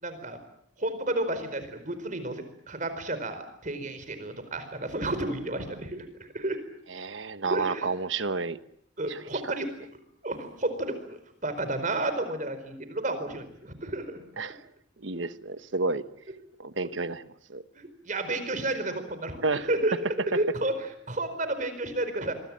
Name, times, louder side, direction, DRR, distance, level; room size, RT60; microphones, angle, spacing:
voice 1, 0.0-0.4 0.8-6.6 7.4-7.9 9.0-9.7 10.2-14.2 17.7-19.9 20.3-22.3, right 2 dB, 45° right, 10 dB, 4.6 m, -31 dB
voice 2, 6.9-8.6 9.1-9.2 9.5-9.6 14.4-14.6 15.0-16.0 16.6-17.2 17.5-17.6 19.4-19.7, right 3 dB, 85° right, 12 dB, 1.2 m, -30 dB
26.5 x 23.5 x 7.5 m, 0.72 s
head